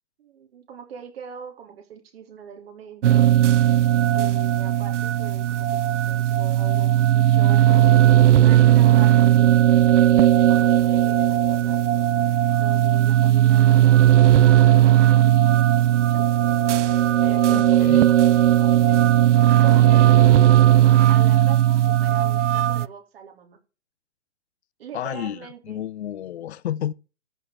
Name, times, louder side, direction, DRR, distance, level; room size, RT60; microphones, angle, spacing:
voice 1, 0.2-3.3 4.1-7.7 8.4-9.5 10.5-11.8 12.5-16.2 17.2-18.7 19.6-20.6 21.1-23.6 24.8-25.8, right 7 dB, 55° right, 3.4 m, -42 dB
sound 1, 3.0-22.9, right 12 dB, 80° right, 0.6 m, -17 dB
voice 2, 17.5-18.1 24.9-26.9, left 11 dB, 65° left, 0.7 m, -31 dB
13.5 x 4.8 x 7.3 m
hypercardioid pair, 135°, 36 cm